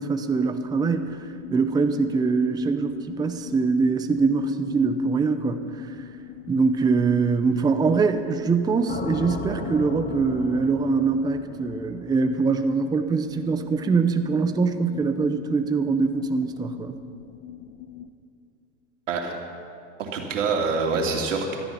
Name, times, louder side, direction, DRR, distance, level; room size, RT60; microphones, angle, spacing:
voice 1, 0.0-6.0 6.5-17.0, right 4 dB, 10° right, 8 dB, 0.7 m, -23 dB
sound 1, 0.6-18.1, left 8 dB, 55° left, 1.0 m, -41 dB
sound 2, 8.9-13.0, left 2 dB, 25° left, 1.7 m, -36 dB
voice 2, 19.1-19.4 20.0-21.6, right 4 dB, 90° right, 2 dB, 2.8 m, -25 dB
18.0 x 13.5 x 5.7 m, 2.5 s
hypercardioid pair, 120°, 37 cm